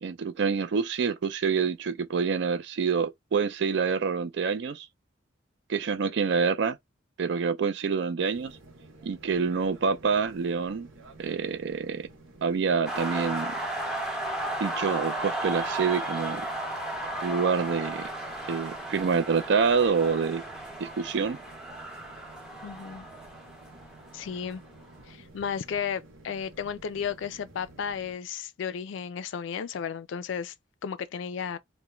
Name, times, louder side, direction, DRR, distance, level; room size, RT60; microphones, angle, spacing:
voice 1, 0.0-4.9 5.7-6.8 7.2-8.6 9.0-10.9 11.2-12.1 12.4-13.5 14.6-16.5 17.2-18.1 18.5-20.4 20.8-21.4, right 5 dB, 60° right, 0.4 m, -27 dB
sound 1, 8.3-28.2, right 2 dB, 90° right, 0.8 m, -52 dB
sound 2, 12.9-24.6, right 1 dB, 5° right, 0.5 m, -34 dB
voice 2, 22.6-23.1 24.1-24.6 25.1-30.5 30.8-31.6, left 7 dB, 70° left, 0.3 m, -34 dB
2.3 x 2.1 x 2.9 m
head